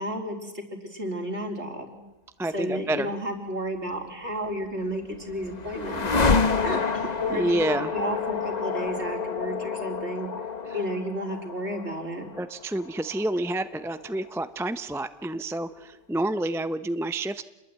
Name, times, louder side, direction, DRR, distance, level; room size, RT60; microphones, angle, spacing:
voice 1, 0.0-2.0 2.5-6.1 6.4-10.3 10.7-12.3, equal, 55° right, 2 dB, 4.4 m, -32 dB
voice 2, 2.4-3.1 7.3-7.9 12.4-17.4, right 1 dB, 5° right, 11 dB, 0.6 m, -28 dB
sound 1, 4.7-14.7, left 4 dB, 35° left, 1.2 m, -29 dB
28.0 x 21.5 x 9.4 m, 1.0 s
omnidirectional pair, 1.4 m